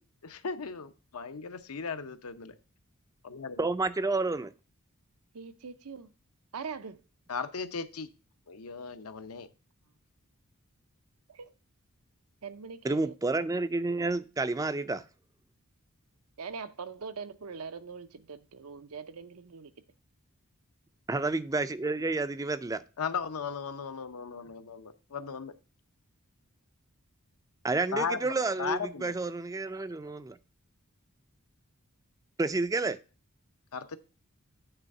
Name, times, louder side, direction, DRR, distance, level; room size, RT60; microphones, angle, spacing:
voice 1, 0.2-2.5 3.2-3.7 7.3-8.1 8.5-9.5 23.0-25.5 27.9-29.1 33.7-34.0, left 5 dB, 75° left, 0.7 m, -36 dB
voice 2, 3.6-4.5 12.8-15.0 21.1-22.8 27.6-30.4 32.4-33.0, right 3 dB, 15° right, 0.4 m, -30 dB
voice 3, 5.3-6.1 6.5-7.0 11.3-11.5 12.4-13.1 16.4-19.7, right 5 dB, 85° right, 0.7 m, -42 dB
9.0 x 3.5 x 6.5 m
head